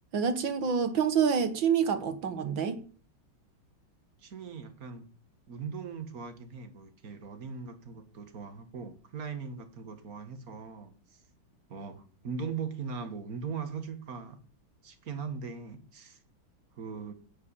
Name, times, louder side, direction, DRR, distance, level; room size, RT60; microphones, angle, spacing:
voice 1, 0.1-2.8, right 7 dB, 65° right, 10 dB, 2.2 m, -27 dB
voice 2, 4.2-5.1 5.5-11.2 11.7-14.4 14.8-16.2 16.7-17.1, right 5 dB, 45° right, 8 dB, 2.1 m, -40 dB
11.0 x 6.2 x 8.9 m, 0.41 s
omnidirectional pair, 2.3 m